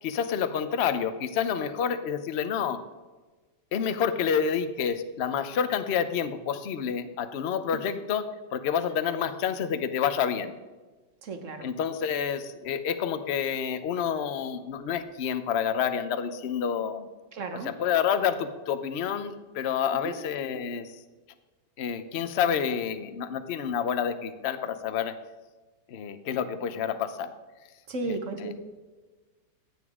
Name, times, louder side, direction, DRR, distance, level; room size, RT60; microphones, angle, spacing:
voice 1, 0.0-2.8 3.7-10.5 11.6-17.1 17.6-21.0 21.8-25.1 25.9-27.3 28.4-28.5, left 8 dB, 55° left, 11 dB, 0.7 m, -28 dB
voice 2, 11.2-11.7 17.3-17.7 19.9-20.2 22.4-22.5 27.9-28.5, right 3 dB, 45° right, 6 dB, 1.4 m, -34 dB
15.5 x 9.1 x 3.7 m, 1.3 s
omnidirectional pair, 2.0 m